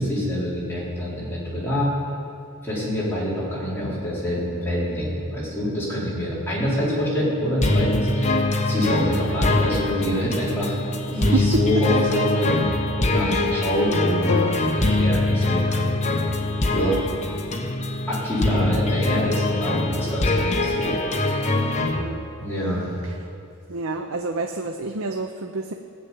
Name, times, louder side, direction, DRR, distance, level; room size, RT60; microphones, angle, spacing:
voice 1, 0.0-1.9 2.6-8.4 8.6-15.9 16.7-17.0 18.1-21.5 22.4-22.9, equal, 10° left, -8 dB, 4.1 m, -26 dB
sound 1, 7.6-22.0, left 2 dB, 30° left, 1.1 m, -23 dB
voice 2, 11.1-11.6 20.4-20.7 21.8-22.2 23.0-23.2 23.7-25.7, right 3 dB, 65° right, 5 dB, 0.7 m, -29 dB
sound 2, 14.3-18.4, left 4 dB, 80° left, 0.5 m, -34 dB
17.0 x 7.1 x 8.6 m, 2.7 s
head